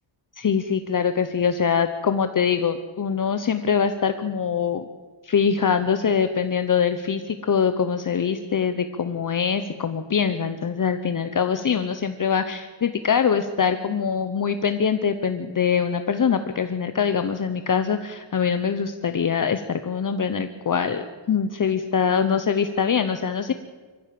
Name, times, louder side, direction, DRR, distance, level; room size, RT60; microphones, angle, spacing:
voice 1, 0.4-4.8 5.2-23.5, left 7 dB, 40° left, 9 dB, 0.9 m, -23 dB
24.5 x 15.5 x 7.7 m, 1.4 s
wide cardioid pair, 155°, 48 cm